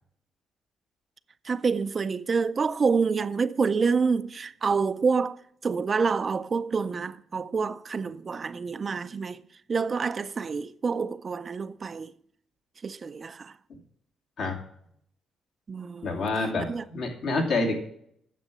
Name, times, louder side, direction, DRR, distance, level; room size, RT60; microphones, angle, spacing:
voice 1, 1.4-9.4 9.7-12.1 12.8-13.6 15.7-16.3 16.7-16.8, right 5 dB, 40° right, 0.4 m, -27 dB
voice 2, 16.0-17.8, left 3 dB, 70° left, 2.4 m, -27 dB
9.1 x 7.1 x 6.1 m
cardioid pair, 90°, 0 cm